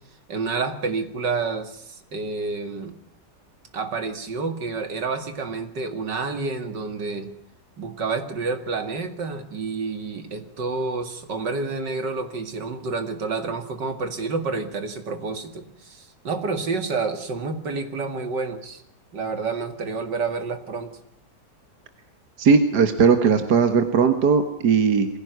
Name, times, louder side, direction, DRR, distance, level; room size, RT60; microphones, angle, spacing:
voice 1, 0.3-2.9 3.7-7.3 7.8-18.8 19.1-20.9, right 4 dB, 85° right, 8 dB, 2.9 m, -29 dB
voice 2, 22.4-25.1, right 5 dB, 70° right, 8 dB, 2.0 m, -18 dB
23.0 x 16.0 x 9.5 m, 0.66 s
omnidirectional pair, 1.8 m